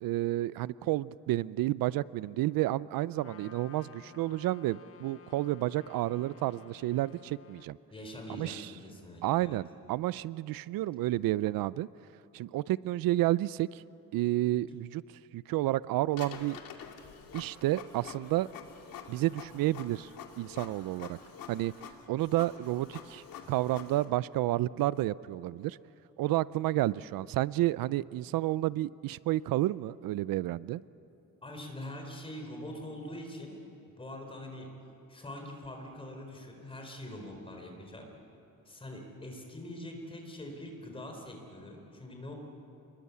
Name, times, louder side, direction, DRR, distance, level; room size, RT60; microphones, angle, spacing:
voice 1, 0.0-7.8 8.4-8.7 9.2-11.9 12.3-13.8 14.1-15.0 15.3-16.6 17.3-18.5 19.1-20.1 20.4-21.2 21.5-21.7 22.1-25.8 26.2-30.8, right 16 dB, 90° right, 19 dB, 0.5 m, -30 dB
Trumpet, 3.1-7.7, left 8 dB, 40° left, 1.0 m, -54 dB
voice 2, 7.9-9.6 31.4-33.6 34.0-34.7 35.1-38.0 38.6-42.3, left 1 dB, 15° left, 2 dB, 4.3 m, -43 dB
Printer, 16.1-24.0, left 7 dB, 85° left, 2.5 m, -47 dB
28.0 x 22.0 x 8.4 m, 2.9 s
cardioid pair, 160°, 33 cm